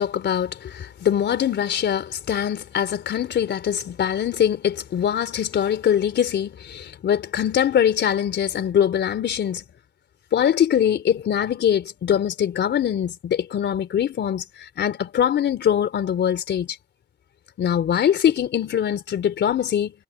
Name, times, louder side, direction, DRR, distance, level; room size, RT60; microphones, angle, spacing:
voice 1, 0.0-9.6 10.3-14.4 14.8-16.7 17.6-19.9, left 9 dB, 60° left, 3.7 m, -22 dB
cardioid pair, 90°, 20 cm